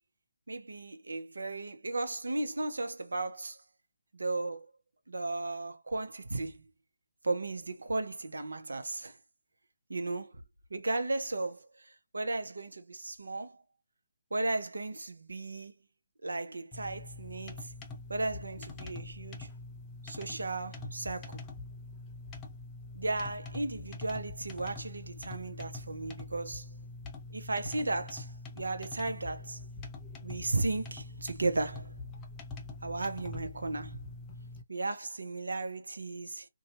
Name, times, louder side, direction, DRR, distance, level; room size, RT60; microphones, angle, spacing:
voice 1, 0.5-3.6 4.1-4.7 5.1-6.6 7.2-9.2 9.9-10.4 10.7-13.6 14.3-15.7 16.2-17.7 18.1-19.5 20.0-21.4 22.9-26.7 27.3-29.6 30.2-31.9 32.8-34.0 34.7-36.5, right 2 dB, 85° right, 0.8 m, -35 dB
sound 1, 16.7-34.6, left 3 dB, 15° left, 0.6 m, -44 dB
2.7 x 2.3 x 2.9 m
figure-of-eight pair, 155°, 0 cm